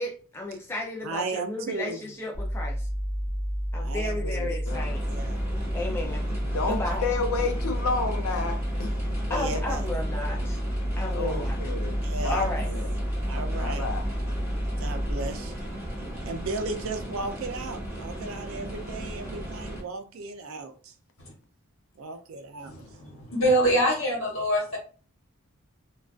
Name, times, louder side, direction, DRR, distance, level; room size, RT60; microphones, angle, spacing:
voice 1, 0.0-2.9 3.7-5.0 5.7-6.2 6.7-7.0 9.3-10.6 11.0-11.6 12.3-12.7 13.0-13.1, left 2 dB, 10° left, 0.3 m, -33 dB
voice 2, 1.0-2.0 3.8-4.6 5.1-5.4 9.3-9.8 12.0-12.5 13.2-13.9 14.8-15.6 16.2-20.7 22.0-22.9, right 3 dB, 70° right, 0.4 m, -35 dB
sound 1, 2.3-15.3, equal, 25° left, 0.8 m, -30 dB
voice 3, 4.1-5.0 6.5-8.9 9.3-9.6 11.1-12.9 13.3-14.0, left 3 dB, 80° left, 0.4 m, -31 dB
sound 2, 4.7-19.8, right 1 dB, 10° right, 1.0 m, -37 dB
voice 4, 22.6-24.8, equal, 60° left, 1.1 m, -24 dB
2.3 x 2.3 x 2.3 m
head